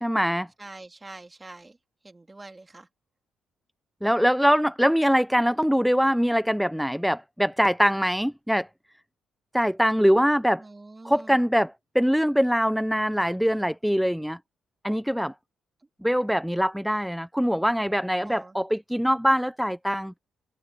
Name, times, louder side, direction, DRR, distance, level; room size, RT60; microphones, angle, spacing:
voice 1, 0.0-0.5 4.0-8.7 9.5-10.6 11.0-14.4 14.8-15.3 16.0-20.1, equal, ahead, 0.4 m, -23 dB
voice 2, 0.6-1.8 2.0-2.9 10.6-11.4 18.2-18.6, right 2 dB, 20° right, 2.3 m, -45 dB
cardioid pair, 90°, 0 cm